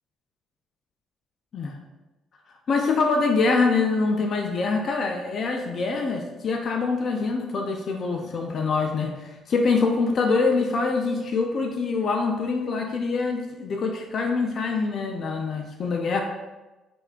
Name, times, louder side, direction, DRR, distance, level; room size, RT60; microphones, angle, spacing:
voice 1, 2.7-16.2, left 4 dB, 55° left, 3 dB, 0.5 m, -24 dB
6.0 x 3.4 x 2.4 m, 1.1 s
supercardioid pair, 70°, 0 cm